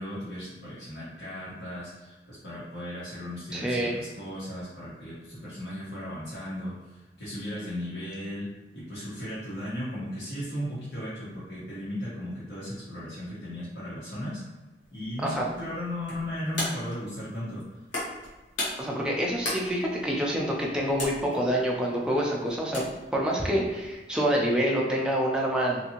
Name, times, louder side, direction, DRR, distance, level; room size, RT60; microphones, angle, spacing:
voice 1, 0.0-8.5 8.7-14.4 14.9-17.6, left 1 dB, 70° left, -11 dB, 1.3 m, -36 dB
voice 2, 3.5-4.0 15.2-15.5 18.8-22.8 23.1-25.8, equal, 5° right, -2 dB, 0.4 m, -27 dB
sound 1, 14.8-24.6, left 1 dB, 85° left, 1.1 m, -39 dB
2.7 x 2.6 x 2.9 m, 1.1 s
head